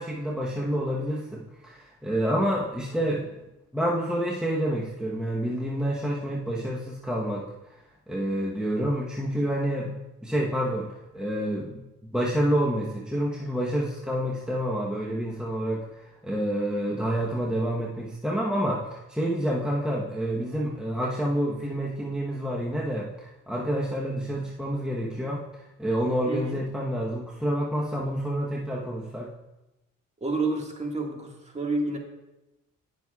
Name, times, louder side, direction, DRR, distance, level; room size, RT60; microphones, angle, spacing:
voice 1, 0.0-3.3 3.7-7.5 8.1-9.9 10.2-11.8 12.1-29.3, equal, ahead, -3 dB, 1.0 m, -28 dB
voice 2, 26.3-26.6 30.2-32.0, right 2 dB, 20° right, 1 dB, 1.8 m, -29 dB
18.0 x 6.1 x 2.4 m, 0.96 s
cardioid pair, 90°, 30 cm